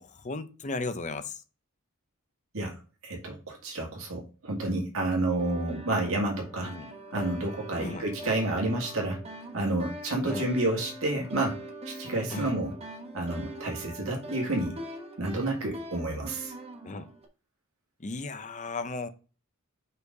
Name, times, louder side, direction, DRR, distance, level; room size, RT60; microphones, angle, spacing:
voice 1, 0.0-1.4 6.6-6.9 7.8-8.1 10.2-10.5 12.3-12.5 16.8-17.1 18.0-19.1, left 3 dB, 35° left, 0.7 m, -35 dB
voice 2, 2.5-6.7 7.1-9.2 9.5-11.6 11.9-12.7 13.1-14.8 15.2-16.5, right 2 dB, 70° right, 2.1 m, -30 dB
sound 1, 5.4-17.3, right 1 dB, 30° right, 1.1 m, -43 dB
5.5 x 4.2 x 5.3 m
head